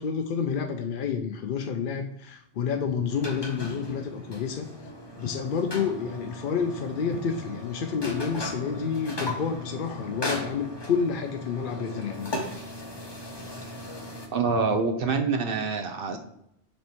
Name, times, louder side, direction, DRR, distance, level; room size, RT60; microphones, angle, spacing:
voice 1, 0.0-4.7 5.2-12.3, left 6 dB, 60° left, 5 dB, 0.6 m, -29 dB
sound 1, 3.1-14.3, left 1 dB, 25° left, 1.0 m, -37 dB
voice 2, 14.3-16.2, right 4 dB, 60° right, 6 dB, 0.9 m, -26 dB
6.7 x 3.6 x 4.4 m, 0.76 s
omnidirectional pair, 1.1 m